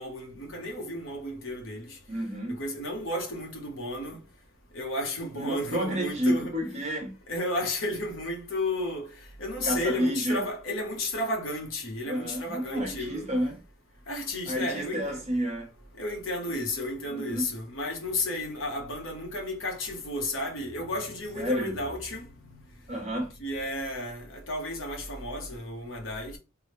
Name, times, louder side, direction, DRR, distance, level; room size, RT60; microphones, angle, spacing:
voice 1, 0.0-2.0 2.5-4.2 4.7-6.5 7.3-13.3 14.1-15.2 16.0-22.6 23.4-26.4, left 1 dB, 80° left, 1.2 m, -33 dB
voice 2, 2.1-2.6 5.3-7.2 9.6-10.4 12.0-13.6 14.5-15.7 17.1-17.5 21.3-21.7 22.9-23.4, equal, 35° right, 1.1 m, -30 dB
3.6 x 2.3 x 3.2 m
head